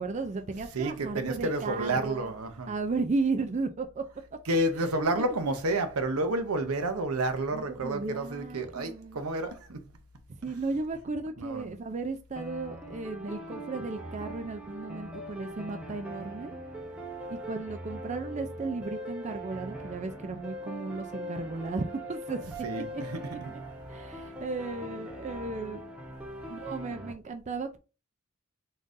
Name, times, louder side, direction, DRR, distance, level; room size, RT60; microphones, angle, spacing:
voice 1, 0.0-2.3 2.7-4.0 4.8-4.9 7.5-9.2 10.4-16.5 17.3-23.0 23.3-23.4 23.9-25.8 26.5-27.8, right 3 dB, 30° right, 0.4 m, -35 dB
voice 2, 0.7-2.7 4.5-9.8 11.4-11.7 22.6-23.5, right 2 dB, 80° right, 0.8 m, -30 dB
sound 1, 12.4-27.1, right 1 dB, 5° right, 0.8 m, -41 dB
3.8 x 3.7 x 2.6 m
head